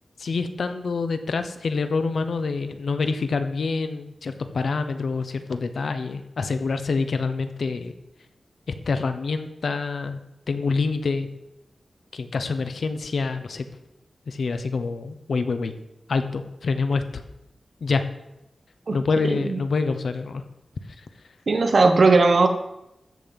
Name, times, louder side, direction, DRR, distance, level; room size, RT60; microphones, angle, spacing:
voice 1, 0.2-7.9 8.7-10.2 10.5-11.3 12.1-13.6 14.3-15.7 16.1-17.2 17.8-18.0 18.9-20.4, left 4 dB, 75° left, 9 dB, 1.0 m, -26 dB
voice 2, 19.2-19.6 21.5-22.5, right 3 dB, 55° right, 6 dB, 1.3 m, -18 dB
13.5 x 7.9 x 5.4 m, 0.89 s
wide cardioid pair, 125°, 0 cm